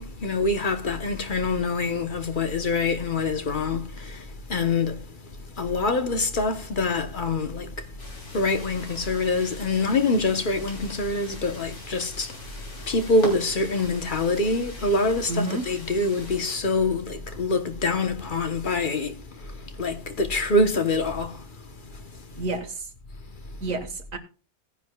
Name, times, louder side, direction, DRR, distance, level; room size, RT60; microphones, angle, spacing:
voice 1, 0.0-22.4 23.4-23.6, left 3 dB, 40° left, 1.1 m, -26 dB
sound 1, 8.0-16.6, left 1 dB, 85° left, 3.8 m, -42 dB
voice 2, 15.3-15.7 22.4-22.9 23.6-24.2, right 2 dB, 65° right, 1.9 m, -29 dB
17.5 x 9.9 x 2.3 m
omnidirectional pair, 1.5 m